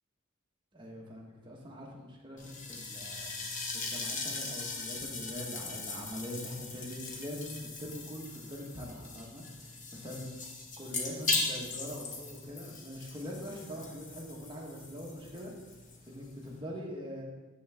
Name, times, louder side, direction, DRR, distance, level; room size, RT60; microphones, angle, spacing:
voice 1, 0.7-3.3 3.7-10.3 10.8-17.2, equal, 25° right, -2 dB, 1.2 m, -43 dB
sound 1, 2.4-16.6, left 3 dB, 40° left, 1.0 m, -39 dB
7.2 x 6.2 x 3.4 m, 1.2 s
head